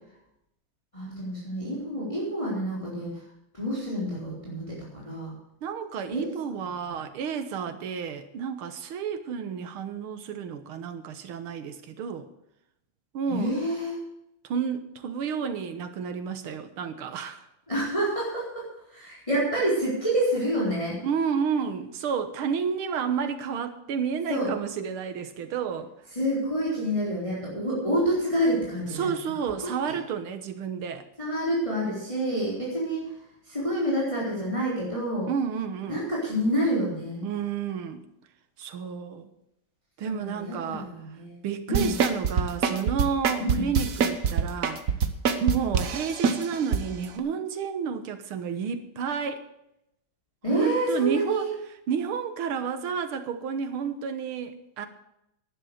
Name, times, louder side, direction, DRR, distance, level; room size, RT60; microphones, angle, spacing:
voice 1, 0.9-3.2 3.5-5.4 6.1-6.3 6.9-7.0 13.3-14.0 17.7-21.0 24.3-24.5 26.1-29.1 31.2-33.1 33.5-35.3 35.9-37.2 40.0-41.4 41.7-41.9 43.4-43.6 50.4-51.5, equal, 15° left, -6 dB, 4.0 m, -28 dB
voice 2, 5.6-12.3 13.1-13.6 14.4-17.5 21.0-25.9 28.9-31.1 35.3-36.0 37.2-38.0 38.6-39.3 40.0-40.9 41.4-44.8 45.4-49.4 50.5-51.6 51.9-54.9, right 6 dB, 90° right, 9 dB, 2.0 m, -31 dB
sound 1, 41.7-46.8 47.2-47.3, right 6 dB, 50° right, 1.1 m, -24 dB
11.5 x 10.5 x 6.5 m, 0.82 s
omnidirectional pair, 2.3 m